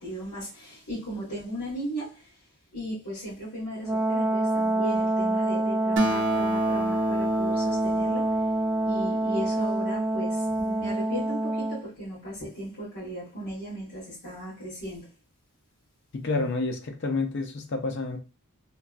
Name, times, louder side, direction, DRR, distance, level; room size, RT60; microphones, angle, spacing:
voice 1, 0.0-2.4 2.7-8.4 8.8-15.1, equal, 75° left, 1.7 m, -36 dB
Brass instrument, 3.8-11.8, right 2 dB, 15° right, 0.7 m, -26 dB
Acoustic guitar, 6.0-9.7, equal, 50° right, 0.5 m, -32 dB
voice 2, 16.1-18.2, left 3 dB, 50° left, 0.5 m, -29 dB
3.2 x 2.2 x 2.4 m
head